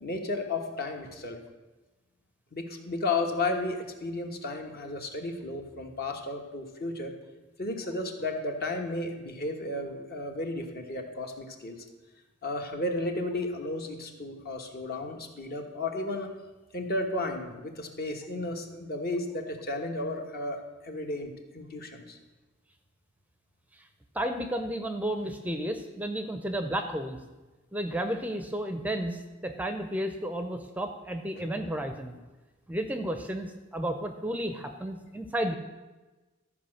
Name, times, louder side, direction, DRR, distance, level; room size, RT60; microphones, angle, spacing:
voice 1, 0.0-1.4 2.5-7.1 7.6-11.8 12.4-16.3 16.7-22.2, left 2 dB, 50° left, 4 dB, 1.2 m, -33 dB
voice 2, 24.1-27.2 27.7-32.2 32.7-35.5, right 1 dB, 10° right, 6 dB, 0.5 m, -32 dB
13.0 x 4.8 x 6.4 m, 1.2 s
head